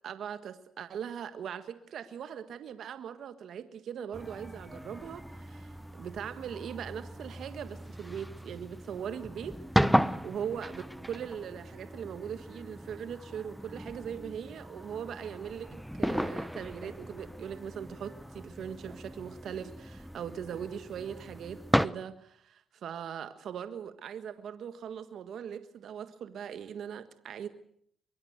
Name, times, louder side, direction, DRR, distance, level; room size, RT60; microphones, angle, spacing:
voice 1, 0.0-9.6 9.9-27.5, right 8 dB, 70° right, 10 dB, 1.6 m, -40 dB
sound 1, 4.1-21.9, equal, ahead, 1.0 m, -35 dB
23.5 x 23.5 x 8.1 m, 0.66 s
supercardioid pair, 65°, 0 cm